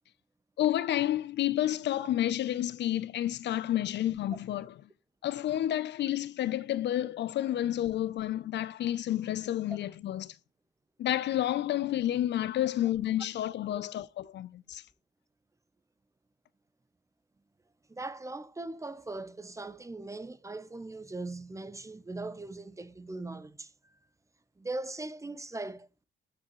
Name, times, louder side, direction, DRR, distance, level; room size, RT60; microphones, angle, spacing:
voice 1, 0.6-4.7 5.2-10.3 11.0-14.8, left 12 dB, 60° left, 0.5 m, -30 dB
voice 2, 17.9-23.7 24.6-25.9, right 2 dB, 15° right, 0.6 m, -40 dB
12.5 x 4.9 x 3.0 m
cardioid pair, 90°, 20 cm